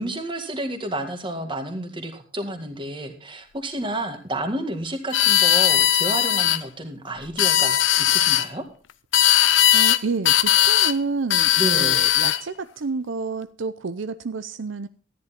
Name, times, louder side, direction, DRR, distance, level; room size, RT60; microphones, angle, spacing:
voice 1, 0.0-8.6 11.6-12.0, right 1 dB, 25° right, 6 dB, 1.9 m, -30 dB
sound 1, 5.1-6.6 7.2-8.5 9.1-10.0 10.2-11.0 11.3-12.4, left 12 dB, 70° left, 0.6 m, -18 dB
voice 2, 9.7-14.9, right 4 dB, 70° right, 12 dB, 0.6 m, -29 dB
13.5 x 10.5 x 4.3 m, 0.39 s
head